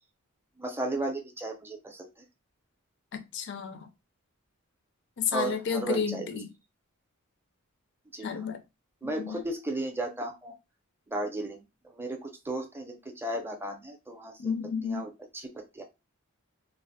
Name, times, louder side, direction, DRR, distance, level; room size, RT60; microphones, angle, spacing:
voice 1, 0.6-2.1 5.3-6.3 8.1-8.3 9.0-10.5 11.1-11.6 11.9-14.5 14.8-15.8, right 2 dB, 10° right, 0.5 m, -35 dB
voice 2, 3.1-3.9 5.2-6.5 8.2-8.6 9.0-9.4 14.4-15.1, left 6 dB, 55° left, 0.4 m, -32 dB
3.2 x 2.1 x 2.6 m
head